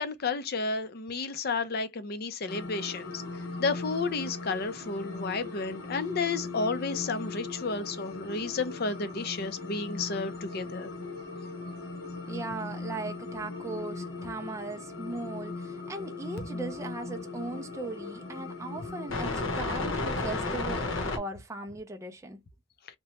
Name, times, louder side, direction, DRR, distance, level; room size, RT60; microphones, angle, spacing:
voice 1, 0.0-3.2 3.6-10.9, left 4 dB, 50° left, 0.5 m, -32 dB
sound 1, 2.5-21.2, left 3 dB, 70° left, 0.8 m, -37 dB
voice 2, 12.3-22.4, right 2 dB, 15° right, 0.3 m, -38 dB
2.8 x 2.2 x 3.0 m
head